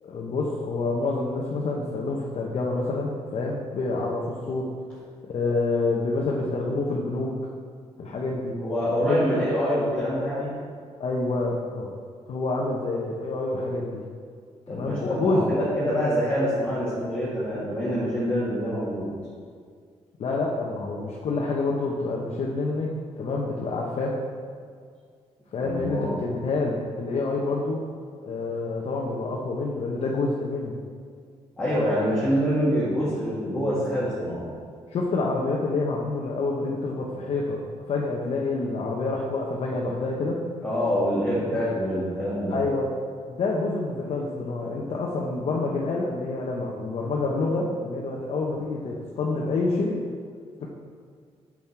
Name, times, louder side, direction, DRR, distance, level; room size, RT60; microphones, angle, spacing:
voice 1, 0.0-4.7 5.2-7.4 8.0-8.6 9.0-9.2 11.0-11.9 12.3-14.0 14.7-15.5 20.2-24.2 25.5-27.8 28.2-30.7 34.9-40.4 42.5-42.9 43.3-50.0 50.6-50.7, left 3 dB, 55° left, -2 dB, 0.9 m, -27 dB
voice 2, 8.6-10.5 14.7-19.1 25.6-26.1 31.6-34.4 40.6-42.6, equal, 10° left, -11 dB, 2.1 m, -25 dB
7.1 x 6.3 x 4.6 m, 2.1 s
cardioid pair, 110°, 12 cm